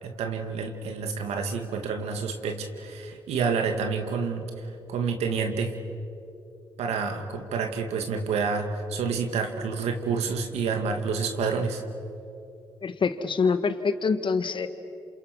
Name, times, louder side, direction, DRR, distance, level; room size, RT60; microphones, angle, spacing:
voice 1, 0.0-5.7 6.8-11.8, right 5 dB, 85° right, 5 dB, 2.3 m, -29 dB
voice 2, 12.8-14.7, left 5 dB, 50° left, 10 dB, 1.8 m, -25 dB
28.0 x 27.5 x 6.1 m, 2.6 s
supercardioid pair, 55°, 11 cm